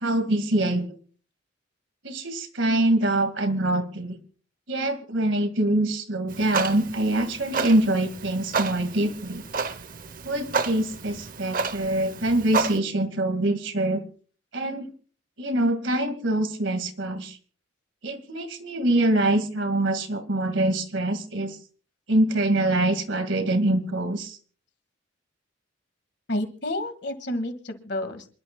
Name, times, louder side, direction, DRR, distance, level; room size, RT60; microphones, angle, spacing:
voice 1, 0.0-0.9 2.0-4.2 4.7-9.4 10.2-14.0 14.5-14.9 15.4-17.4 18.0-21.6 22.1-24.4, right 1 dB, 75° right, 8 dB, 1.8 m, -24 dB
Clock, 6.3-12.8, right 4 dB, 45° right, 0.8 m, -31 dB
voice 2, 26.3-28.3, left 1 dB, 60° left, 9 dB, 1.7 m, -30 dB
27.0 x 12.0 x 2.2 m, 0.40 s
head